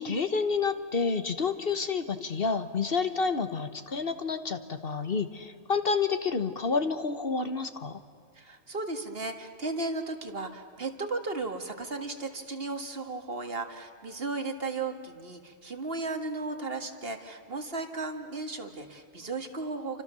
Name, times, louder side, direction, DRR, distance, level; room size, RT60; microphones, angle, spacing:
voice 1, 0.0-8.0, left 5 dB, 50° left, 9 dB, 1.4 m, -29 dB
voice 2, 8.3-20.0, right 3 dB, 50° right, 6 dB, 2.1 m, -35 dB
29.5 x 25.5 x 7.0 m, 2.3 s
omnidirectional pair, 1.3 m